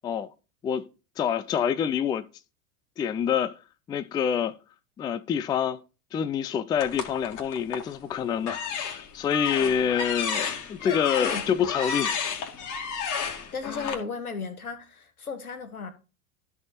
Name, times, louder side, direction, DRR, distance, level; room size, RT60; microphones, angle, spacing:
voice 1, 1.2-2.2 3.0-3.6 3.9-4.5 5.0-5.8 6.1-12.3, left 8 dB, 10° left, 0.3 m, -27 dB
sound 1, 6.8-7.9 8.4-13.9, left 6 dB, 45° left, 2.4 m, -32 dB
voice 2, 10.8-11.4 13.5-15.9, left 5 dB, 85° left, 1.7 m, -35 dB
13.0 x 4.7 x 4.2 m
figure-of-eight pair, 85°, 42 cm